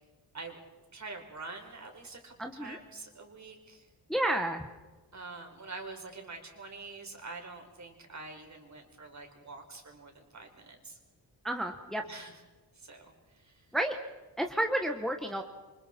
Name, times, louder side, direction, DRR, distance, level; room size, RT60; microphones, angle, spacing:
voice 1, 0.9-3.9 5.1-11.0 12.1-12.4 12.7-13.7, right 3 dB, 40° right, 3 dB, 4.0 m, -46 dB
voice 2, 2.4-2.8 4.1-4.6 11.4-12.0 13.7-14.0 14.4-15.4, right 1 dB, ahead, 3 dB, 1.2 m, -31 dB
27.5 x 25.0 x 4.3 m, 1.2 s
wide cardioid pair, 150°, 42 cm